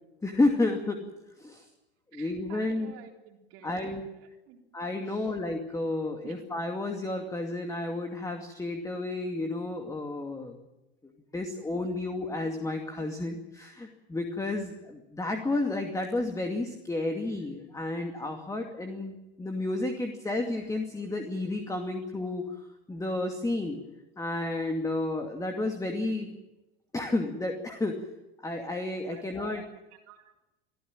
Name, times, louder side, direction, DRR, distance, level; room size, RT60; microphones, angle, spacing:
voice 1, 0.2-1.0 1.4-1.6 2.1-2.9 3.6-4.0 4.7-10.6 11.3-23.8 24.2-26.3 26.9-28.0 28.4-29.6, left 2 dB, 10° left, 4 dB, 2.5 m, -31 dB
voice 2, 2.1-4.6 5.1-5.4 6.2-6.4 29.1-29.7 30.0-30.3, right 8 dB, 55° right, 2 dB, 3.9 m, -52 dB
25.5 x 14.5 x 9.0 m, 1.0 s
hypercardioid pair, 85°, 30 cm